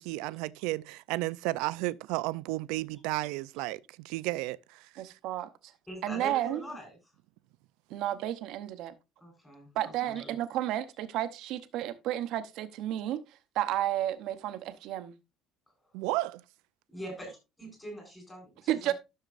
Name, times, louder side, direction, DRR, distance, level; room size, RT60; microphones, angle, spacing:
voice 1, 0.0-5.0 15.9-16.4, right 19 dB, 85° right, 0.4 m, -33 dB
voice 2, 5.0-5.5 6.0-6.6 7.9-8.9 9.7-13.2 13.5-15.1 18.7-18.9, right 12 dB, 55° right, 0.8 m, -32 dB
voice 3, 5.9-7.0 9.2-10.3 16.9-17.3 17.6-18.9, equal, 10° left, 4.1 m, -43 dB
13.0 x 6.5 x 2.5 m
cardioid pair, 180°, 0 cm